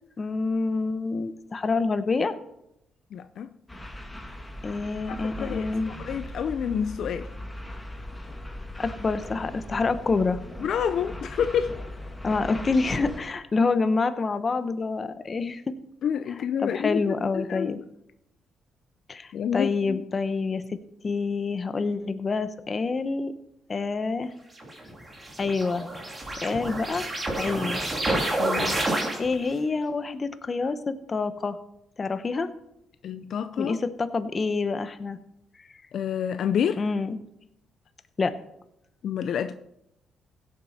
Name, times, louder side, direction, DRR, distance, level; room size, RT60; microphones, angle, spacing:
voice 1, 0.2-2.3 4.6-5.9 8.8-10.4 12.2-15.6 16.6-17.8 19.1-20.8 21.0-23.3 23.7-24.3 25.4-25.9 26.4-27.1 27.4-27.8 29.2-31.6 32.0-32.5 33.6-35.2 36.8-37.2 38.2-38.4, left 4 dB, 35° left, 0.9 m, -27 dB
voice 2, 3.1-3.5 5.1-7.3 10.6-11.8 16.0-17.7 19.3-20.0 28.4-29.0 33.0-33.7 35.9-36.8 39.0-39.5, left 8 dB, 65° left, 0.5 m, -28 dB
sound 1, 3.7-13.2, left 1 dB, 15° left, 1.6 m, -39 dB
sound 2, 24.6-29.5, right 1 dB, 25° right, 3.0 m, -29 dB
16.5 x 7.5 x 4.2 m
cardioid pair, 90°, 0 cm